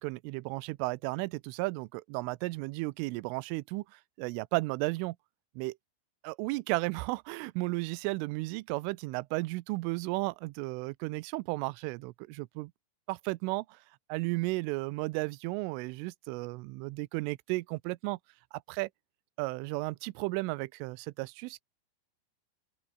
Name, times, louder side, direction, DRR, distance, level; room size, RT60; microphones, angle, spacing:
voice 1, 0.0-5.2 5.6-5.8 6.2-12.7 13.1-13.8 14.1-18.2 18.7-18.9 19.4-21.6, right 23 dB, 80° right, 3.1 m, -34 dB
open air
omnidirectional pair, 5.9 m